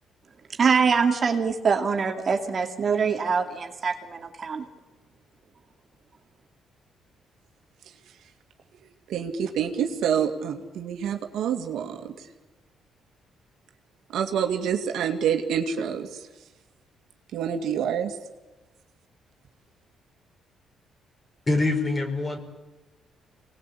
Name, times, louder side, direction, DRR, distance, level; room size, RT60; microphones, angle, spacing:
voice 1, 0.6-4.7, right 5 dB, 45° right, 4 dB, 2.5 m, -24 dB
voice 2, 9.1-12.0 14.1-16.1 17.3-18.1, right 8 dB, 80° right, 5 dB, 2.3 m, -27 dB
voice 3, 21.5-22.4, left 2 dB, 25° left, 5 dB, 4.8 m, -24 dB
24.5 x 19.5 x 8.6 m, 1.1 s
cardioid pair, 90°, 0 cm